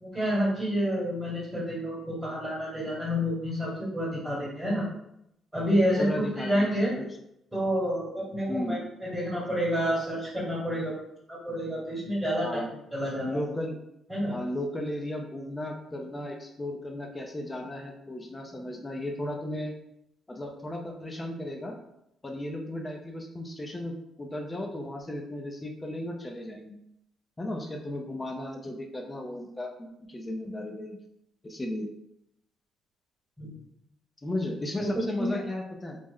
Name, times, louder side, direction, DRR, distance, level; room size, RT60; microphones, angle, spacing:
voice 1, 0.0-4.8 5.5-6.9 7.5-10.9 11.3-12.7 12.9-13.4 14.1-14.4 33.4-33.5 34.8-34.9 35.2-35.4, equal, 10° right, -8 dB, 1.3 m, -29 dB
voice 2, 6.0-6.7 7.0-7.1 8.5-8.8 12.4-12.7 13.2-13.8 14.3-19.7 20.3-21.8 22.2-26.8 27.4-31.0 31.4-31.9 34.2-36.0, left 1 dB, 20° left, 2 dB, 0.4 m, -35 dB
3.2 x 2.0 x 3.6 m, 0.80 s
cardioid pair, 115°, 0 cm